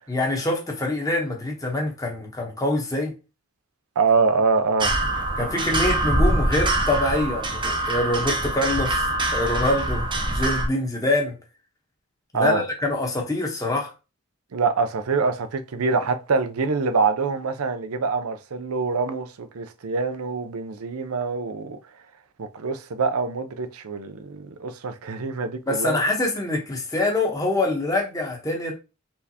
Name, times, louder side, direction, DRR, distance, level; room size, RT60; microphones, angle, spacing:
voice 1, 0.1-3.1 5.4-11.4 12.3-13.9 25.7-28.7, left 2 dB, 15° left, 1.0 m, -25 dB
voice 2, 4.0-5.0 12.3-12.6 14.5-21.8 22.4-26.0, right 4 dB, 85° right, 0.5 m, -25 dB
sound 1, 4.8-10.7, right 1 dB, 20° right, 0.6 m, -24 dB
4.4 x 3.4 x 2.8 m
head